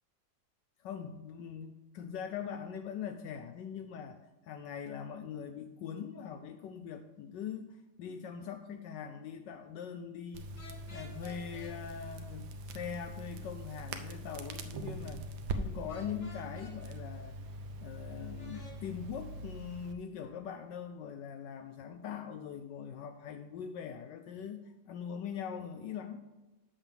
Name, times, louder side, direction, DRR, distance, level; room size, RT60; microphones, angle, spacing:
voice 1, 0.8-4.2 4.4-10.5 10.9-15.2 15.5-17.4 17.8-26.2, left 7 dB, 75° left, 8 dB, 1.1 m, -42 dB
Crackle, 10.3-19.9, right 2 dB, 90° right, 1.5 m, -42 dB
sound 1, 10.6-11.7 15.9-16.7 18.4-18.8, left 2 dB, 45° left, 1.7 m, -52 dB
7.0 x 5.5 x 7.2 m, 1.1 s
omnidirectional pair, 2.0 m